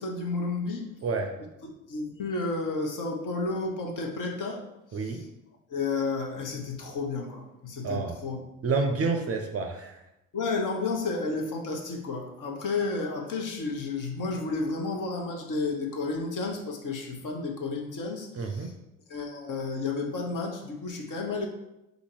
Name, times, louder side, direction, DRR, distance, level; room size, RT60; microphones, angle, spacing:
voice 1, 0.0-0.8 1.9-4.6 5.0-5.2 5.7-8.4 8.9-9.0 10.3-18.7 19.1-21.5, left 3 dB, 45° left, 2 dB, 1.1 m, -31 dB
voice 2, 1.0-1.3 4.9-5.2 7.8-8.2 8.6-10.0 18.3-18.8, right 4 dB, 35° right, 5 dB, 0.6 m, -29 dB
3.9 x 2.8 x 4.5 m, 0.91 s
hypercardioid pair, 55°, 43 cm